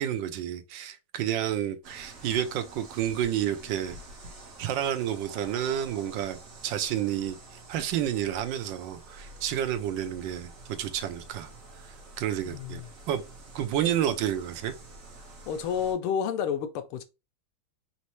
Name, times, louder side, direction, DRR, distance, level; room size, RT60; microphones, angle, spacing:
voice 1, 0.0-4.0 4.6-6.4 6.6-7.4 7.7-11.5 11.8-12.8 13.1-13.2 13.5-14.7, right 10 dB, 75° right, 1.1 m, -30 dB
sound 1, 1.8-15.9, right 2 dB, 45° right, 1.4 m, -48 dB
voice 2, 12.4-12.9 15.5-17.0, left 7 dB, 80° left, 1.6 m, -30 dB
4.3 x 3.1 x 3.0 m
omnidirectional pair, 2.4 m